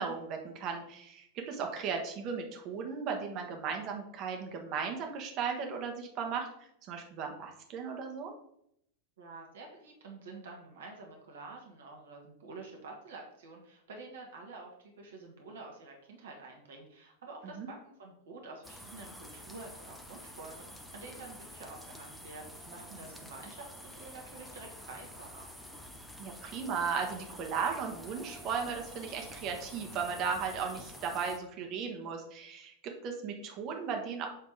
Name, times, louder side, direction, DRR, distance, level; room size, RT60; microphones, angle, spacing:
voice 1, 0.0-6.5 6.9-8.3 17.6-17.7 26.2-34.3, right 6 dB, 40° right, 3 dB, 1.4 m, -36 dB
voice 2, 9.2-25.5, right 3 dB, 60° right, 0 dB, 1.5 m, -48 dB
sound 1, 18.6-31.4, equal, ahead, 0.9 m, -49 dB
7.7 x 3.5 x 4.7 m, 0.72 s
figure-of-eight pair, 90°, 0 cm